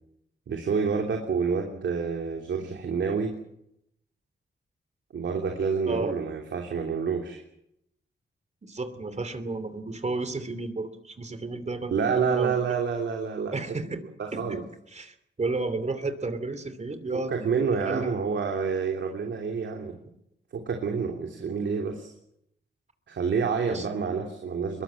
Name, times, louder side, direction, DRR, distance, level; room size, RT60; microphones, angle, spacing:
voice 1, 0.5-3.3 5.1-7.4 11.9-13.5 14.2-14.6 17.1-20.0 20.5-22.1 23.1-24.8, right 5 dB, 90° right, 2 dB, 3.1 m, -28 dB
voice 2, 8.6-12.6 13.5-14.0 14.3-14.6 14.9-17.5 17.9-18.4 23.7-23.9, right 3 dB, 40° right, 11 dB, 2.9 m, -32 dB
22.5 x 22.0 x 7.6 m, 0.76 s
wide cardioid pair, 90°, 18 cm